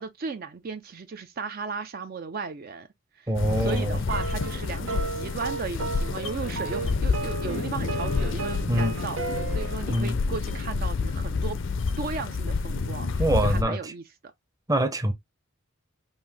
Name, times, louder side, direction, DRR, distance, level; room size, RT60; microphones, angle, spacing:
voice 1, 0.0-2.9 3.1-9.2 9.5-11.6 12.0-14.0, right 4 dB, 45° right, 0.5 m, -35 dB
sound 1, 3.3-13.6, left 4 dB, 60° left, 0.5 m, -29 dB
voice 2, 3.3-4.0 8.7-8.9 9.9-10.2 13.2-13.9 14.7-15.1, right 1 dB, 15° right, 0.7 m, -24 dB
sound 2, 3.7-9.9, right 4 dB, 75° right, 0.8 m, -35 dB
5.5 x 2.6 x 3.4 m
head